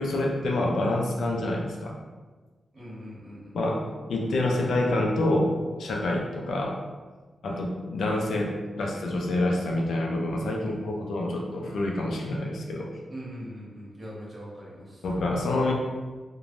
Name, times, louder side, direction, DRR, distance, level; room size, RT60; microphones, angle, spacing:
voice 1, 0.0-1.9 3.5-3.8 4.1-5.5 5.8-6.8 7.4-12.9 15.0-15.7, left 1 dB, 85° left, 0 dB, 0.4 m, -27 dB
voice 2, 2.7-3.5 7.5-7.7 10.6-11.1 13.1-15.0, equal, 35° right, -7 dB, 1.2 m, -42 dB
3.1 x 2.2 x 2.5 m, 1.3 s
wide cardioid pair, 95°, 0 cm